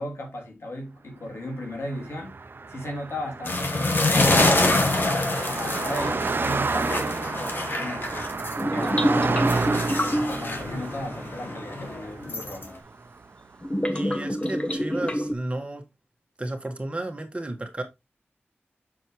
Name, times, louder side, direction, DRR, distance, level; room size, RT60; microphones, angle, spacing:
voice 1, 0.0-5.1 5.4-8.3 8.7-12.8, left 1 dB, 85° left, 3.0 m, -36 dB
Car passing by, 1.7-13.2, right 4 dB, 55° right, 0.6 m, -31 dB
sound 1, 3.5-8.6 9.0-12.7, left 2 dB, 55° left, 2.0 m, -26 dB
sound 2, 8.6-10.5 12.3-12.4 13.6-15.3, equal, 25° left, 1.2 m, -26 dB
voice 2, 13.9-15.8 16.4-17.8, right 2 dB, 30° right, 1.8 m, -33 dB
7.0 x 7.0 x 3.1 m
wide cardioid pair, 95°, 4 cm